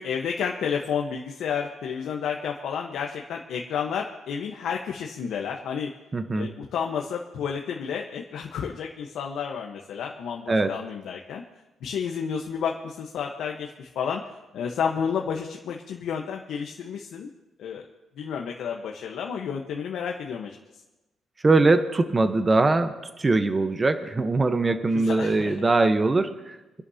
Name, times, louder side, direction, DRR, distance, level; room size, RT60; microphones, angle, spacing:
voice 1, 0.0-5.9 6.3-11.4 11.8-14.2 14.5-17.3 17.6-17.8 18.2-20.5 24.9-25.5, left 7 dB, 75° left, 1 dB, 1.1 m, -31 dB
voice 2, 6.1-6.5 10.5-10.7 21.4-26.8, right 3 dB, 25° right, 8 dB, 1.0 m, -22 dB
26.0 x 11.0 x 2.9 m, 1.1 s
cardioid pair, 90°, 0 cm